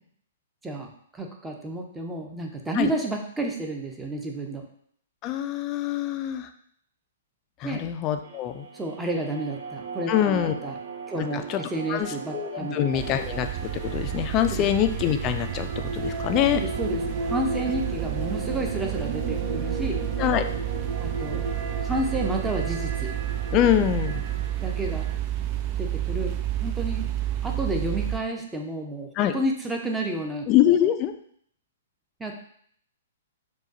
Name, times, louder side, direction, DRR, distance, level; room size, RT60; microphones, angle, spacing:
voice 1, 0.6-4.6 7.6-7.8 8.7-10.8 11.1-13.0 16.5-20.0 21.0-21.5 21.8-23.1 24.6-25.1 25.8-27.1 27.4-30.5 32.2-32.3, right 1 dB, 10° right, 2 dB, 0.7 m, -31 dB
voice 2, 5.2-6.5 7.6-8.7 10.1-10.5 11.2-11.6 11.9-16.6 20.2-20.4 23.5-24.2 29.1-29.3 30.5-31.1, left 11 dB, 30° left, 7 dB, 0.4 m, -24 dB
sound 1, 8.2-25.1, right 2 dB, 60° right, 0.7 m, -35 dB
sound 2, 12.9-28.2, right 13 dB, 35° right, 0.3 m, -30 dB
4.9 x 2.3 x 3.9 m, 0.64 s
figure-of-eight pair, 115°, 0 cm